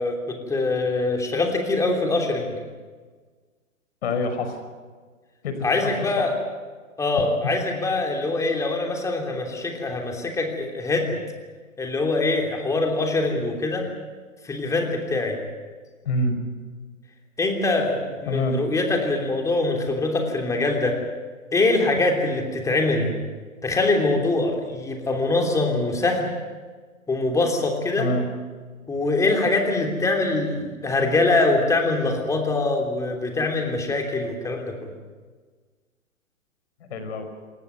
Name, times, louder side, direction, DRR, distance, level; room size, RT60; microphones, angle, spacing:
voice 1, 0.0-2.5 5.6-6.3 7.0-11.2 11.8-13.9 14.4-15.4 17.4-21.0 21.5-23.1 23.6-26.3 27.1-28.1 28.9-34.9, left 2 dB, 5° left, 2 dB, 3.1 m, -23 dB
voice 2, 4.0-4.6 5.4-5.9 16.0-16.3 18.3-18.6 28.0-28.3 36.9-37.3, left 2 dB, 50° left, 8 dB, 5.6 m, -26 dB
28.0 x 15.0 x 9.3 m, 1.5 s
figure-of-eight pair, 135°, 42 cm